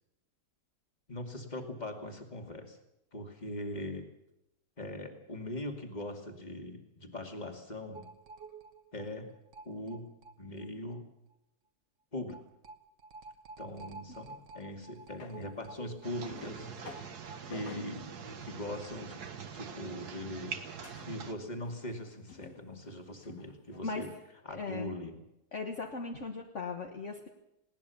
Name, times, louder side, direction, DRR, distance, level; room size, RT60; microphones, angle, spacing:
voice 1, 1.1-2.8 3.1-4.1 4.8-8.0 8.9-9.3 9.6-10.1 10.4-11.0 12.1-12.4 13.6-17.1 17.4-18.1 18.4-19.2 19.5-20.5 21.0-24.1 24.4-25.2, left 1 dB, 25° left, 3 dB, 2.7 m, -41 dB
sound 1, 7.9-10.7 10.9-11.0 11.3-11.4 12.3-18.1 18.3-18.4 18.7-18.8, right 3 dB, 50° right, 1.6 m, -50 dB
sound 2, 15.2-15.4 16.3-17.1 17.5-17.9 18.7-19.0 19.6-20.2 20.5-20.6 20.8-21.1 21.7-22.6 22.9-23.9, left 5 dB, 85° left, 2.5 m, -50 dB
sound 3, 16.0-21.3, right 6 dB, 85° right, 2.0 m, -44 dB
voice 2, 24.5-24.9 25.5-27.3, left 4 dB, 50° left, 1 dB, 1.9 m, -38 dB
20.5 x 18.5 x 7.1 m, 0.87 s
omnidirectional pair, 1.7 m